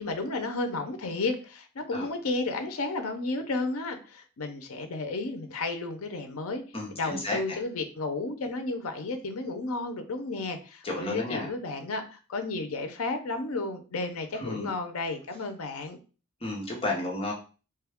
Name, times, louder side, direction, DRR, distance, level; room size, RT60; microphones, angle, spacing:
voice 1, 0.0-6.6 6.9-16.0, left 3 dB, 80° left, 6 dB, 0.6 m, -32 dB
voice 2, 6.7-7.4 10.8-11.5 14.4-14.7 16.4-17.3, left 2 dB, 25° left, -2 dB, 0.8 m, -32 dB
3.2 x 2.3 x 3.4 m, 0.35 s
head